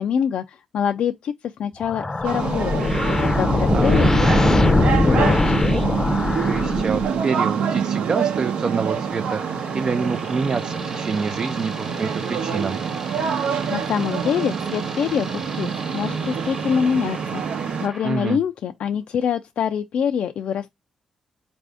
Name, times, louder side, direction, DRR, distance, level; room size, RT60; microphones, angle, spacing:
voice 1, 0.0-4.1 4.6-5.6 13.2-15.7 15.9-17.4 17.8-20.7, left 8 dB, 70° left, 0.3 m, -25 dB
sound 1, 1.8-7.3, left 2 dB, 20° left, 0.6 m, -20 dB
sound 2, 2.2-17.9, right 7 dB, 75° right, 0.8 m, -26 dB
voice 2, 3.7-4.2 6.4-12.8 18.0-18.4, right 5 dB, 40° right, 0.4 m, -27 dB
sound 3, 8.3-18.4, right 2 dB, 20° right, 1.0 m, -39 dB
4.1 x 2.6 x 3.4 m
cardioid pair, 95°, 2 cm